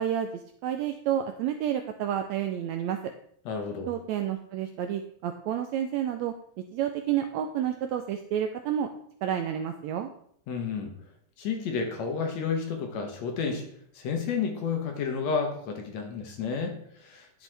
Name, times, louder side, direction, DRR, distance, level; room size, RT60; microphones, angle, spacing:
voice 1, 0.0-3.0 3.9-8.9 9.2-10.1, right 10 dB, 85° right, 7 dB, 1.6 m, -30 dB
voice 2, 3.5-3.9 10.5-10.9 11.4-13.6 13.9-17.4, left 5 dB, 65° left, 3 dB, 2.1 m, -31 dB
10.0 x 6.2 x 3.3 m, 0.64 s
omnidirectional pair, 3.7 m